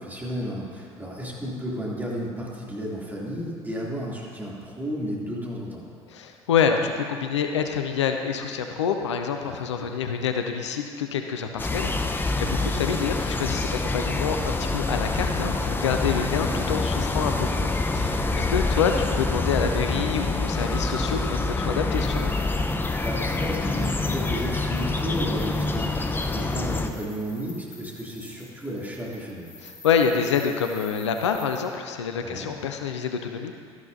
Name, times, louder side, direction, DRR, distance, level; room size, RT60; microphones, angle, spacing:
voice 1, 0.0-5.9 9.4-9.9 12.3-12.5 15.8-16.2 18.3-18.5 23.0-29.6 32.2-32.5, equal, 10° right, -5 dB, 3.0 m, -33 dB
voice 2, 6.1-22.3 29.6-33.5, left 7 dB, 75° left, 6 dB, 0.6 m, -27 dB
sound 1, 11.6-26.9, left 3 dB, 15° left, 0.7 m, -26 dB
sound 2, 21.9-31.6, left 3 dB, 30° left, 2.9 m, -48 dB
12.5 x 11.0 x 2.8 m, 2.2 s
figure-of-eight pair, 60°, 15 cm